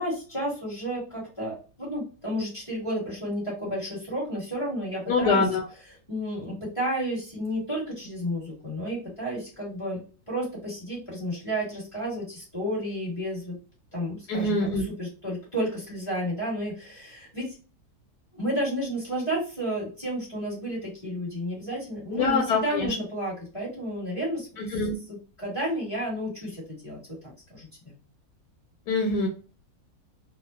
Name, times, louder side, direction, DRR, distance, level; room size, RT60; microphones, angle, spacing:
voice 1, 0.0-5.4 6.1-10.0 10.3-13.5 13.9-17.5 18.3-24.7 25.1-27.9, equal, 20° left, -7 dB, 1.2 m, -32 dB
voice 2, 5.1-5.7 14.3-14.8 22.1-22.9 24.6-24.9 28.9-29.3, left 3 dB, 85° left, 1 dB, 1.1 m, -24 dB
2.7 x 2.0 x 2.3 m, 0.36 s
omnidirectional pair, 1.7 m